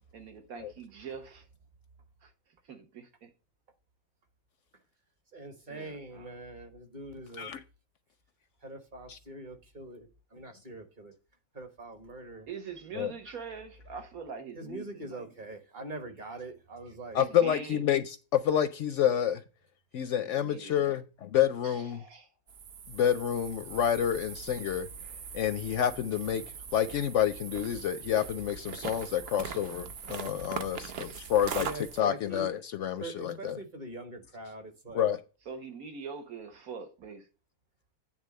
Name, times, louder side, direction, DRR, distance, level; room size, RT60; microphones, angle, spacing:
voice 1, 0.1-1.5 2.2-2.3 2.7-3.3 5.7-6.3 12.5-15.2 17.2-17.8 20.2-20.9 21.6-22.3 30.9-31.3 35.5-37.3, right 6 dB, 75° right, 1.6 m, -44 dB
voice 2, 5.3-7.5 8.6-11.1 11.5-12.5 14.5-17.2 31.5-32.5 33.0-35.1, right 2 dB, 35° right, 1.4 m, -43 dB
voice 3, 17.1-19.4 19.9-22.0 22.9-24.9 25.3-26.4 26.7-31.7 32.0-33.5 34.9-35.2, left 10 dB, 65° left, 0.8 m, -28 dB
sound 1, 22.5-32.0, right 7 dB, 55° right, 0.8 m, -41 dB
8.9 x 3.6 x 6.4 m
omnidirectional pair, 1.6 m